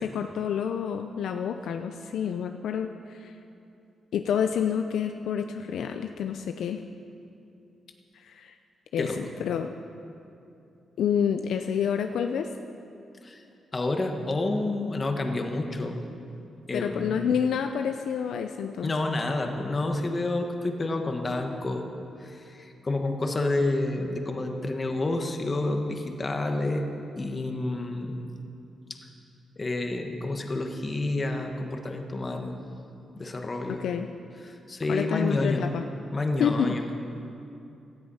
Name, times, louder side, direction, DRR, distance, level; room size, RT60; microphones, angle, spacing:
voice 1, 0.0-3.3 4.1-6.8 8.1-8.6 8.9-9.7 11.0-12.5 16.7-18.9 33.8-34.1 34.9-35.8 36.4-36.7, left 8 dB, 80° left, 6 dB, 0.6 m, -28 dB
voice 2, 13.7-16.0 16.7-17.2 18.8-21.9 22.2-26.9 27.1-28.3 29.6-32.5 33.1-33.8 34.4-35.6 36.1-36.8, left 2 dB, 25° left, 3 dB, 1.4 m, -29 dB
17.0 x 12.5 x 5.6 m, 2.6 s
cardioid pair, 125°, 0 cm